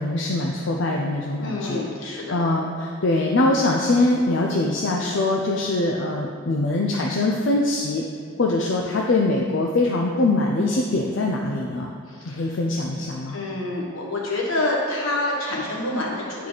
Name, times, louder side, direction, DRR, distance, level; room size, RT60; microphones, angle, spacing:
voice 1, 0.0-8.0 8.4-11.9 12.3-13.4, left 2 dB, 65° left, 0 dB, 0.5 m, -23 dB
voice 2, 1.4-2.4 12.1-12.4 13.3-16.5, left 2 dB, 80° left, -3 dB, 1.5 m, -27 dB
8.7 x 4.7 x 4.0 m, 2.4 s
head